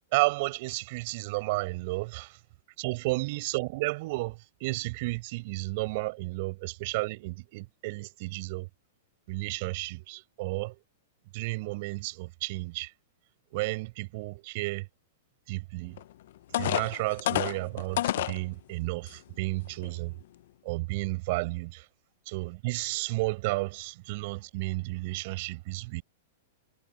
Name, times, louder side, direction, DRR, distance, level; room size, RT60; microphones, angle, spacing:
voice 1, 0.1-2.3 2.8-8.7 9.3-10.8 11.3-12.9 13.5-14.9 15.5-16.0 16.6-20.1 20.6-21.9 22.3-26.0, right 23 dB, 55° right, 6.3 m, -32 dB
sound 1, 16.0-16.1 16.5-18.4 19.1-19.2 19.7-19.9, left 13 dB, 65° left, 0.7 m, -29 dB
hypercardioid pair, 130°, 0 cm